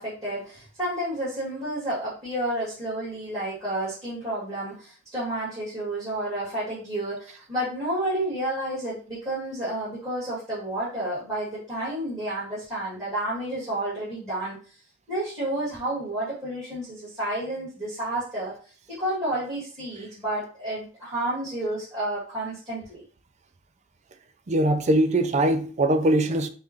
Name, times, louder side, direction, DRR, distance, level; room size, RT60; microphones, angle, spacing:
voice 1, 0.0-14.7 15.1-18.5 18.9-23.0, right 1 dB, 20° right, 2.2 m, -30 dB
voice 2, 24.5-26.5, right 1 dB, 40° right, 0.4 m, -21 dB
5.4 x 2.5 x 3.0 m
head